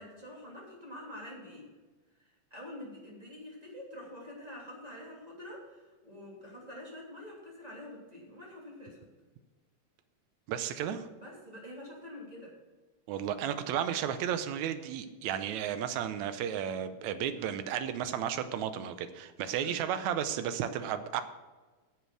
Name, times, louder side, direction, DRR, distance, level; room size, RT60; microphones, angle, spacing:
voice 1, 0.0-1.7 2.2-9.1 11.2-12.5 19.6-19.8, left 1 dB, 10° right, -4 dB, 2.8 m, -46 dB
voice 2, 10.5-11.1 13.1-21.2, right 9 dB, 75° right, 10 dB, 1.9 m, -33 dB
10.5 x 7.5 x 6.2 m, 1.3 s
omnidirectional pair, 3.8 m